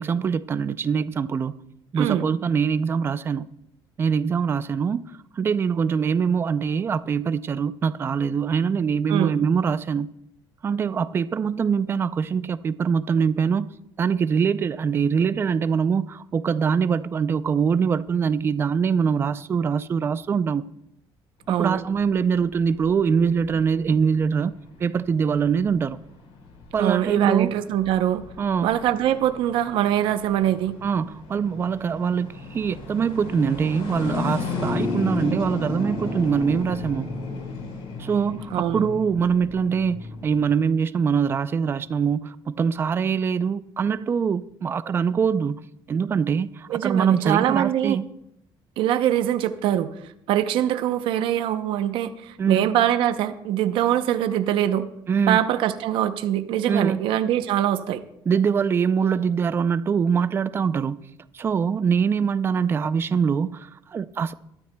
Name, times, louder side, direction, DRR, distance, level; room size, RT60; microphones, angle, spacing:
voice 1, 0.0-1.5 1.9-3.5 4.0-5.1 5.4-10.1 10.6-13.7 14.0-20.6 21.5-24.5 24.8-26.0 26.7-27.5 28.4-28.7 30.8-37.1 38.0-45.6 45.9-48.0 52.4-52.7 55.1-55.4 56.7-57.0 58.3-61.0 61.3-64.3, right 6 dB, 25° right, 0.4 m, -23 dB
voice 2, 2.0-2.3 9.1-9.4 21.5-21.8 26.8-28.2 28.6-30.8 38.5-38.8 46.7-48.0 48.8-49.9 50.3-54.9 55.3-58.0, right 11 dB, 70° right, 0.7 m, -23 dB
sound 1, 21.5-40.4, left 3 dB, 80° left, 4.4 m, -34 dB
20.5 x 12.5 x 2.2 m
cardioid pair, 160°, 9 cm